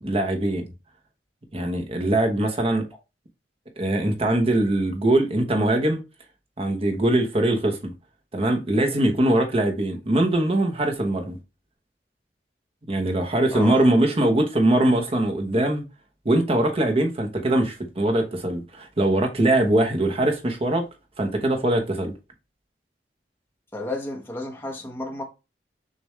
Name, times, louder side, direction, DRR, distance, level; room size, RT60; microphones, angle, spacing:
voice 1, 0.0-0.7 1.5-2.8 3.8-6.0 6.6-7.9 8.3-11.4 12.9-15.8 16.2-20.9 21.2-22.1, right 1 dB, 35° right, 1.0 m, -22 dB
voice 2, 13.5-13.8 23.7-25.2, left 2 dB, 15° left, 1.1 m, -32 dB
6.5 x 2.6 x 3.1 m
head